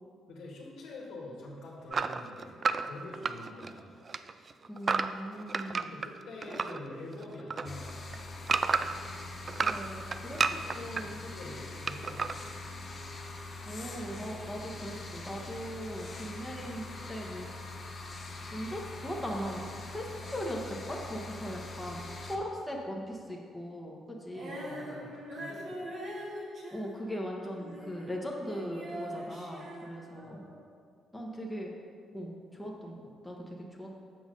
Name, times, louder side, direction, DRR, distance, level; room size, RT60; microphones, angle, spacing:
voice 1, 0.3-2.6 2.8-4.0 5.8-8.5 10.8-12.8 24.5-26.3 30.2-30.6, left 2 dB, 75° left, -3 dB, 1.8 m, -46 dB
sound 1, 1.9-6.8 7.1-9.1 9.5-11.0 11.9-12.4, right 5 dB, 40° right, 0.3 m, -31 dB
voice 2, 4.7-5.9 9.6-11.2 13.7-17.5 18.5-19.6 19.9-24.6 26.7-30.5 31.1-31.7 32.1-33.0 33.2-34.0, equal, 5° left, -2 dB, 1.3 m, -39 dB
sound 2, 7.6-22.4, left 2 dB, 40° left, 1.0 m, -43 dB
Female singing, 24.3-28.2 28.4-30.6, right 1 dB, 55° right, 1.9 m, -42 dB
7.4 x 6.1 x 5.3 m, 2.1 s
cardioid pair, 90°, 0 cm